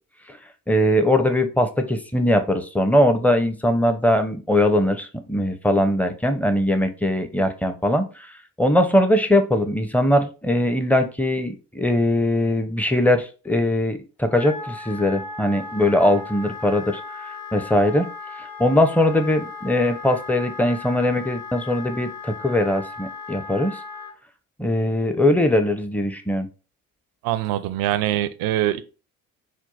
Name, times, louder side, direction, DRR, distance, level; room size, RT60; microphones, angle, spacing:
voice 1, 0.7-8.1 8.6-17.0 17.5-18.1 18.6-23.8 24.6-26.5, left 1 dB, 5° left, 0.6 m, -20 dB
Wind instrument woodwind instrument, 14.2-24.1, left 4 dB, 80° left, 1.3 m, -37 dB
voice 2, 27.2-28.8, right 13 dB, 60° right, 0.5 m, -23 dB
4.4 x 2.1 x 4.0 m
hypercardioid pair, 55°, 40 cm